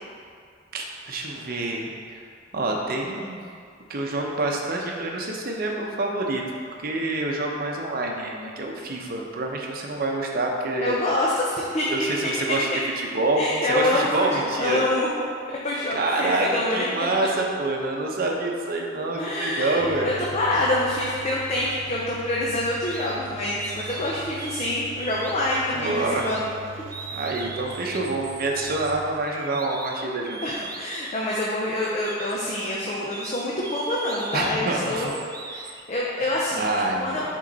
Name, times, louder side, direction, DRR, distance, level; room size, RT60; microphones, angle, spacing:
voice 1, 0.7-2.2 2.5-3.5 3.9-6.4 6.8-11.0 11.9-12.7 13.1-14.8 15.9-16.5 16.7-20.1 25.7-26.3 27.1-30.7 34.3-35.1 36.6-37.2, right 2 dB, 50° right, 0 dB, 0.7 m, -27 dB
voice 2, 10.8-11.9 13.4-15.1 15.5-16.8 19.2-26.5 30.4-35.1 35.5-36.7 37.0-37.2, left 1 dB, 35° left, -5 dB, 0.6 m, -26 dB
Engine, 19.8-29.2, right 5 dB, 85° right, 0.5 m, -41 dB
sound 1, 22.8-23.2 23.6-24.7 25.0-25.5 26.1-26.4 26.9-31.2 31.8-35.8, right 4 dB, 20° right, 0.3 m, -39 dB
6.4 x 3.8 x 4.0 m, 2.2 s
head